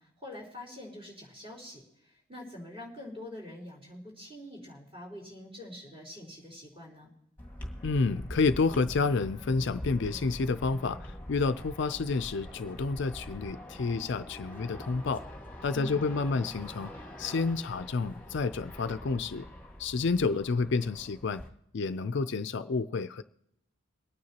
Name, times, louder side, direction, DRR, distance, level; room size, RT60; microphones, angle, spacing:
voice 1, 0.0-7.1 15.7-16.0 16.3-16.4, left 1 dB, 25° right, 4.0 m, -45 dB
sound 1, 7.4-21.5, left 1 dB, 10° left, 1.8 m, -44 dB
voice 2, 7.8-15.2 15.6-16.9 17.2-19.5 19.8-21.4 21.7-23.2, left 4 dB, 55° left, 0.4 m, -29 dB
23.0 x 9.5 x 2.9 m
head